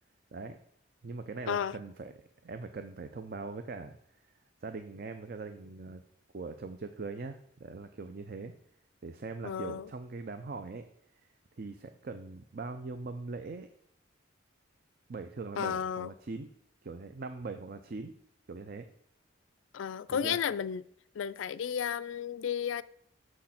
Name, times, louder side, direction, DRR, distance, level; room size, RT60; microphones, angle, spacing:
voice 1, 1.0-2.1 2.4-4.0 4.6-6.0 6.3-8.5 9.0-10.8 11.6-13.7 15.1-16.5 16.8-18.1 18.5-18.9 20.1-20.4, right 3 dB, 50° right, 0.5 m, -41 dB
voice 2, 9.4-9.9 15.6-16.1 19.7-20.8 21.2-22.8, left 8 dB, 80° left, 0.4 m, -33 dB
6.5 x 6.3 x 5.8 m
head